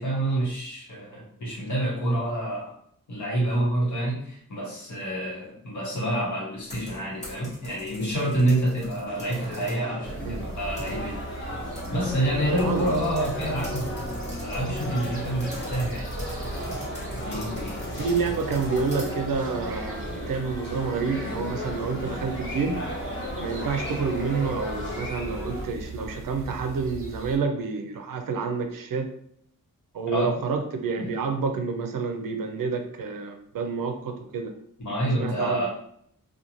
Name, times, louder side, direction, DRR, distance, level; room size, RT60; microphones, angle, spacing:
voice 1, 0.0-2.8 3.1-11.2 11.9-16.1 17.1-17.9 30.1-30.4 31.0-31.1 34.8-35.7, right 1 dB, 60° left, -4 dB, 1.0 m, -28 dB
sound 1, 6.6-9.8 10.3-11.3 11.8-11.9 12.1-12.2 12.6-20.7, equal, 20° left, 0.9 m, -42 dB
sound 2, 9.1-25.7, left 1 dB, 35° left, 0.5 m, -35 dB
sound 3, 10.0-27.4, right 3 dB, 40° right, 0.7 m, -39 dB
voice 2, 12.6-13.0 18.0-22.8 23.4-29.1 29.9-34.5 35.2-35.7, right 5 dB, 75° right, 6 dB, 0.5 m, -29 dB
2.5 x 2.3 x 2.9 m, 0.68 s
wide cardioid pair, 170°, 34 cm